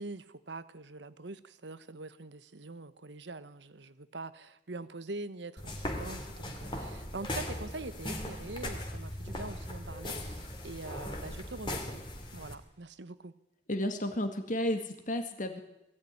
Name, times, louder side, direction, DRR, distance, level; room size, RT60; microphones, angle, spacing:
voice 1, 0.0-12.0 12.3-13.3, right 2 dB, 70° right, 1.2 m, -44 dB
sound 1, 5.6-12.5, left 1 dB, 25° left, 2.8 m, -39 dB
voice 2, 13.7-15.6, left 1 dB, 45° left, 1.9 m, -32 dB
21.0 x 16.0 x 9.8 m
head